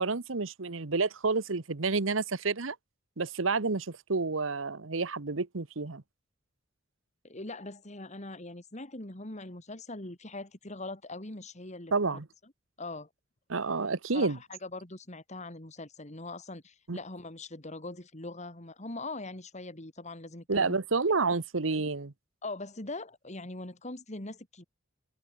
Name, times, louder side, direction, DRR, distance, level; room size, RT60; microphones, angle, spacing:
voice 1, 0.0-2.8 3.2-6.0 11.9-12.3 13.5-14.4 16.9-17.0 20.5-22.1, right 4 dB, 80° right, 1.1 m, -29 dB
voice 2, 7.2-12.2 12.8-13.1 14.1-20.8 21.2-21.3 22.4-24.6, left 2 dB, 35° left, 2.7 m, -42 dB
head